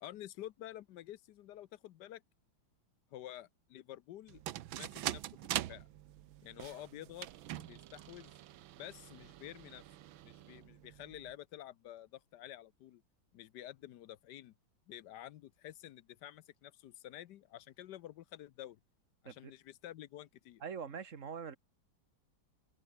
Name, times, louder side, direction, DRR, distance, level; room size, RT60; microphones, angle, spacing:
voice 1, 0.0-2.2 3.1-4.4 4.7-5.9 6.4-7.3 7.6-8.3 8.8-9.8 10.2-13.0 13.3-14.5 14.9-18.8 19.2-20.6, left 13 dB, 65° left, 1.2 m, -50 dB
sound 1, 4.3-11.3, right 13 dB, 80° right, 1.6 m, -44 dB
voice 2, 20.6-21.6, right 6 dB, 40° right, 1.8 m, -43 dB
open air
omnidirectional pair, 2.2 m